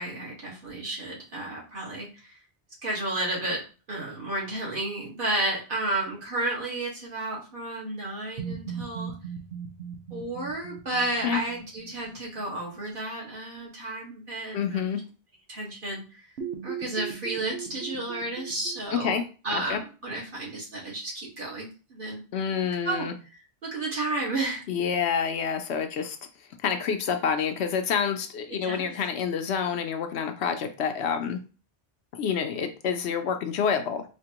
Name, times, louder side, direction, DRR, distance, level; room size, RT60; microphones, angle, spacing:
voice 1, 0.0-2.4 2.8-9.1 10.1-14.9 15.5-16.2 16.6-22.2 22.5-23.1 23.6-24.6 28.5-28.9, right 2 dB, 50° right, -4 dB, 1.6 m, -32 dB
sound 1, 8.4-12.3 16.4-18.8, right 7 dB, 85° right, 1.0 m, -38 dB
voice 2, 14.5-15.0 19.0-19.2 19.5-19.8 22.3-23.1 24.7-26.2 26.6-31.4 32.1-34.0, left 7 dB, 75° left, 6 dB, 0.9 m, -28 dB
4.3 x 2.7 x 2.9 m, 0.35 s
omnidirectional pair, 1.1 m